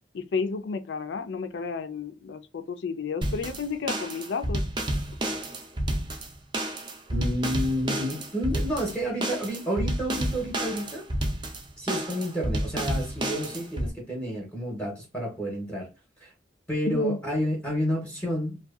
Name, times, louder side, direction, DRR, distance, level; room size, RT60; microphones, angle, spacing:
voice 1, 0.1-4.6 16.9-17.2, left 4 dB, 70° left, 0.4 m, -32 dB
sound 1, 3.2-13.9, right 1 dB, 25° right, 0.4 m, -30 dB
voice 2, 7.1-11.1 11.8-15.9 16.2-16.3 16.7-18.6, equal, 10° left, 0.7 m, -30 dB
2.6 x 2.2 x 2.3 m
head